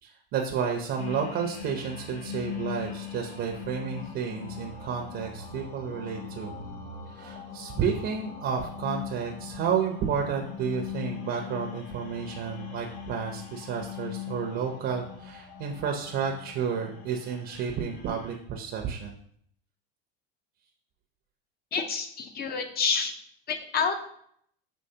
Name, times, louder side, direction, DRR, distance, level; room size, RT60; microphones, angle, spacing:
voice 1, 0.0-6.5 7.1-19.2, right 7 dB, 45° right, 2 dB, 0.6 m, -31 dB
sound 1, 1.0-18.4, left 8 dB, 70° left, 0.9 m, -40 dB
voice 2, 21.7-23.1 23.5-24.0, left 5 dB, 35° left, 7 dB, 0.6 m, -28 dB
5.4 x 2.9 x 2.8 m, 0.66 s
supercardioid pair, 110°, 30 cm